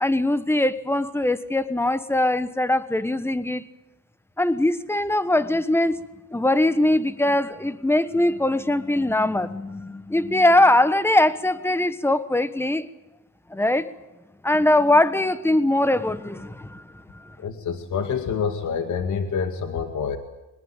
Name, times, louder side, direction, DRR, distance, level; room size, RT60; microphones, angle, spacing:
voice 1, 0.0-3.6 4.4-6.0 6.3-12.9 13.5-13.8 14.4-16.8, left 1 dB, 5° left, 1.2 m, -21 dB
voice 2, 17.4-20.2, left 6 dB, 60° left, 2.0 m, -27 dB
23.0 x 20.5 x 9.1 m
cardioid pair, 105°, 33 cm